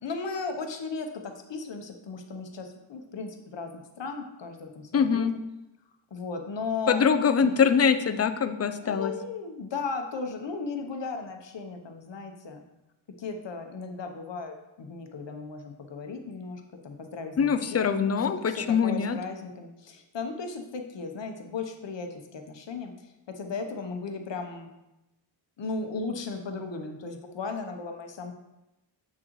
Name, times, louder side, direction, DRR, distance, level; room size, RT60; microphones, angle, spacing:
voice 1, 0.0-5.4 6.1-7.1 7.4-7.6 8.8-12.6 13.2-18.0 18.5-24.7 25.6-28.3, left 4 dB, 65° left, 5 dB, 0.9 m, -36 dB
voice 2, 4.9-5.3 6.9-9.1 17.4-19.2, left 6 dB, 35° left, 10 dB, 0.4 m, -23 dB
7.6 x 6.3 x 3.0 m, 0.94 s
wide cardioid pair, 120°, 46 cm